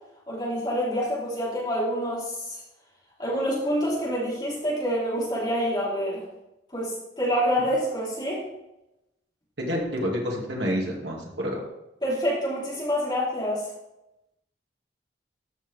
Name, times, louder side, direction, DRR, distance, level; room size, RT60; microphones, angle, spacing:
voice 1, 0.3-2.6 3.2-6.3 6.7-8.4 12.0-13.7, equal, 25° left, -7 dB, 3.8 m, -27 dB
voice 2, 9.6-11.6, equal, 75° right, -1 dB, 2.3 m, -28 dB
13.5 x 6.1 x 3.5 m, 0.90 s
head